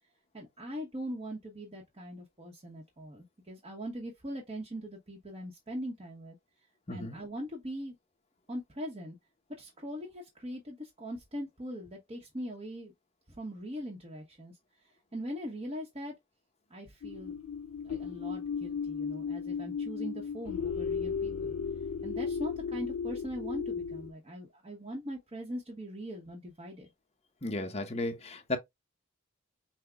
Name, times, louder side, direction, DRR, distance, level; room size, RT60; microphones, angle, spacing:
voice 1, 0.3-6.4 6.9-7.9 8.5-9.2 9.6-12.9 13.3-14.6 14.8-16.1 16.7-17.4 17.8-21.6 22.0-26.9, equal, 30° right, 1.0 m, -41 dB
voice 2, 6.9-7.2 27.4-28.6, left 2 dB, 30° left, 0.9 m, -34 dB
sound 1, 17.0-24.1, left 6 dB, 90° left, 0.4 m, -35 dB
5.9 x 2.2 x 3.4 m
head